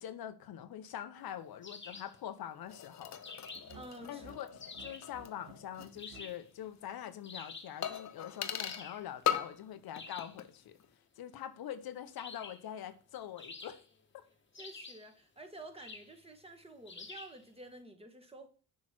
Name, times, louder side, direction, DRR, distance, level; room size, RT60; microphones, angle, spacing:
voice 1, 0.0-3.2 4.1-10.8 11.2-13.8 14.1-14.2, left 10 dB, 80° left, 0.8 m, -44 dB
sound 1, 1.6-2.2 3.2-3.8 4.6-5.1 6.0-6.5 7.2-7.8 8.6-9.1 9.9-10.4 12.2-12.7 13.4-14.0 14.5-15.1 15.8-16.2 16.9-17.4, left 4 dB, 30° left, 1.1 m, -49 dB
sound 2, 2.7-6.0 6.3-6.4 7.8-8.9 9.3-9.7 10.0-10.5 10.8-10.9, left 9 dB, 50° left, 0.7 m, -39 dB
sound 3, 3.5-6.3, right 4 dB, 70° right, 2.1 m, -54 dB
voice 2, 3.7-4.5 14.6-18.5, right 1 dB, 15° right, 1.4 m, -50 dB
6.3 x 3.2 x 5.8 m
cardioid pair, 75°, 36 cm